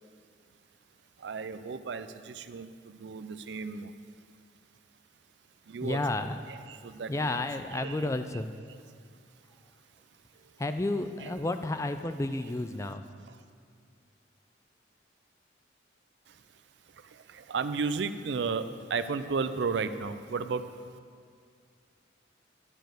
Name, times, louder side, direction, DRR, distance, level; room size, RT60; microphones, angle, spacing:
voice 1, 1.2-3.9 5.7-6.0 6.7-7.4 7.8-8.1 16.3-16.4 16.9-20.7, right 5 dB, 70° right, 11 dB, 0.4 m, -34 dB
voice 2, 5.8-6.4 7.1-8.5 10.6-13.0, left 2 dB, 15° left, 9 dB, 0.3 m, -31 dB
11.0 x 5.1 x 7.6 m, 2.2 s
head